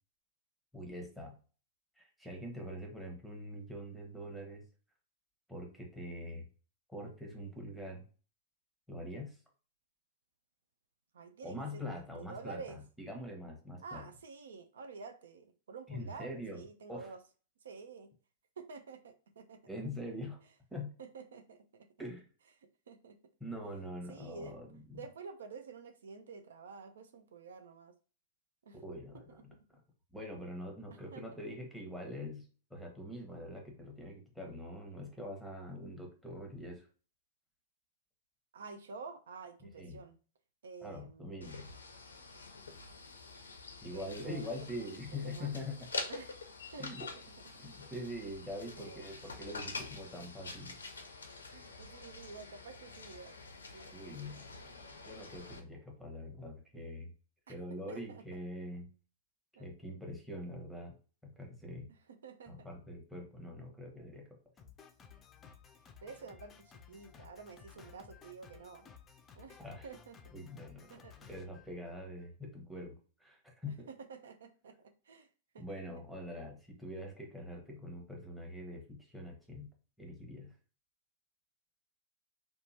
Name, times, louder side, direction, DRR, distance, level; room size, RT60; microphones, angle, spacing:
voice 1, 0.7-1.4 2.0-4.6 5.5-6.5 6.9-8.1 8.9-9.4 11.4-14.1 15.9-16.6 16.9-17.1 19.7-20.4 20.7-20.9 22.0-22.2 23.4-25.0 28.8-29.5 30.1-36.9 39.8-40.0 40.8-41.7 43.8-45.8 46.8-47.1 47.6-50.8 53.9-54.8 55.0-57.1 57.5-58.9 59.6-61.0 61.2-61.9 62.5-64.3 69.6-69.9 70.3-71.0 71.3-73.9 75.6-79.7 80.0-80.5, left 1 dB, ahead, 1 dB, 0.9 m, -44 dB
voice 2, 11.1-12.8 13.8-17.2 17.6-18.1 18.6-19.6 21.0-21.9 22.9-23.2 24.1-24.6 24.9-27.9 28.6-28.8 29.1-29.2 30.9-31.2 38.5-40.2 40.6-41.4 43.9-44.9 45.2-45.5 46.1-46.4 46.7-46.9 47.7-47.8 48.8-49.1 51.5-53.4 53.7-53.9 57.5-57.6 57.9-58.2 59.6-59.7 61.9-62.7 66.0-68.9 69.4-70.2 70.9-71.3 73.7-75.3 75.5-75.8, right 5 dB, 75° right, 7 dB, 0.3 m, -49 dB
sound 1, 41.4-55.6, left 3 dB, 85° left, 0.4 m, -46 dB
Drum kit, 64.6-72.4, left 7 dB, 25° left, 0.4 m, -57 dB
2.8 x 2.3 x 2.7 m, 0.38 s
hypercardioid pair, 100°, 0 cm